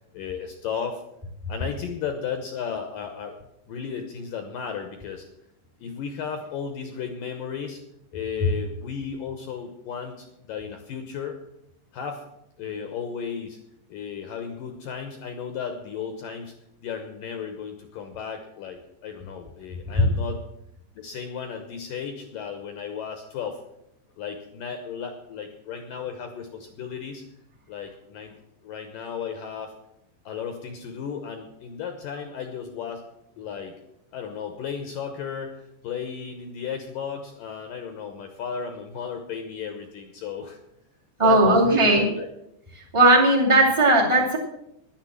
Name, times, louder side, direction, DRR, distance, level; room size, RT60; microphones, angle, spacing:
voice 1, 0.1-1.0 1.5-3.4 3.7-5.3 5.8-7.8 8.1-11.4 11.9-12.3 12.6-13.6 13.9-16.5 16.8-20.4 21.0-23.6 24.2-27.2 27.7-28.3 28.6-29.7 30.3-33.0 33.4-33.7 34.1-40.6 41.2-42.3, left 7 dB, 75° left, 6 dB, 2.1 m, -34 dB
voice 2, 41.2-42.0 42.7-44.4, right 2 dB, 20° right, -1 dB, 0.8 m, -17 dB
10.5 x 10.5 x 7.3 m, 0.82 s
omnidirectional pair, 5.1 m